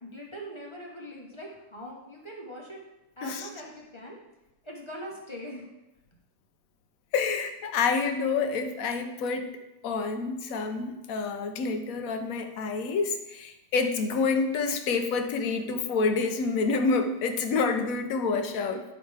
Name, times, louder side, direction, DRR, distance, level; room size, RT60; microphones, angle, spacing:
voice 1, 0.0-2.8 3.2-4.2 4.6-5.7, equal, 20° left, -3 dB, 0.8 m, -41 dB
voice 2, 7.1-9.5 9.8-18.8, left 4 dB, 60° left, 6 dB, 1.0 m, -28 dB
11.0 x 5.2 x 3.3 m, 0.98 s
omnidirectional pair, 2.0 m